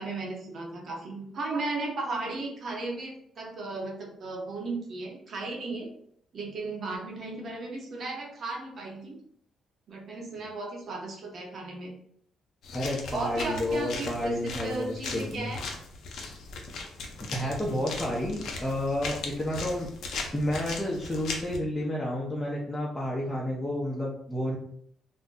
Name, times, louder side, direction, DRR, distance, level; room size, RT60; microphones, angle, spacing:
voice 1, 0.0-5.9 6.3-9.2 9.9-11.9 13.1-15.7 18.0-18.2, right 3 dB, 55° right, 0 dB, 0.9 m, -35 dB
sound 1, 12.6-21.6, left 3 dB, 75° left, 0.6 m, -38 dB
voice 2, 12.7-15.5 17.3-19.9 20.3-24.6, left 1 dB, 15° left, -4 dB, 0.6 m, -30 dB
2.6 x 2.1 x 3.7 m, 0.67 s
cardioid pair, 90°, 0 cm